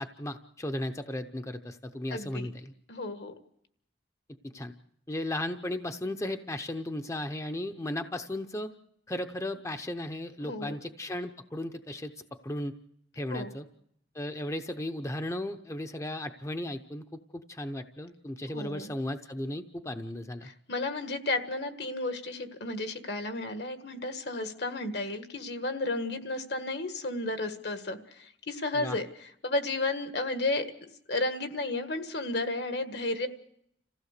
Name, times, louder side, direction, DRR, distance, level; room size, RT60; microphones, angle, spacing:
voice 1, 0.0-2.7 4.4-4.7 5.1-8.7 9.1-12.1 12.4-12.7 13.1-13.7 14.1-17.0 17.3-20.5 28.7-29.0, left 1 dB, 15° left, 7 dB, 0.7 m, -35 dB
voice 2, 2.1-2.5 2.9-3.3 10.4-10.8 13.3-13.5 18.5-18.9 20.4-30.7 31.1-33.3, left 2 dB, 65° left, 7 dB, 1.8 m, -33 dB
27.0 x 16.0 x 6.6 m, 0.72 s
head